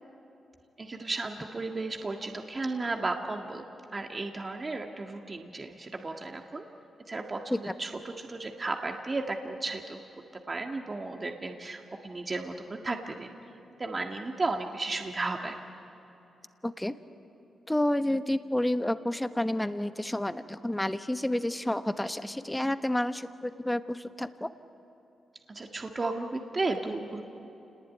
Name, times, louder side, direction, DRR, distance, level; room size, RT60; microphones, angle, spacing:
voice 1, 0.8-3.7 3.9-6.7 7.1-10.0 10.5-13.3 13.8-15.6 25.5-27.2, right 3 dB, 35° right, 3 dB, 1.8 m, -34 dB
voice 2, 16.6-16.9 17.7-24.5, left 1 dB, 10° left, 10 dB, 1.1 m, -30 dB
28.0 x 19.5 x 9.4 m, 3.0 s
cardioid pair, 65°, 0 cm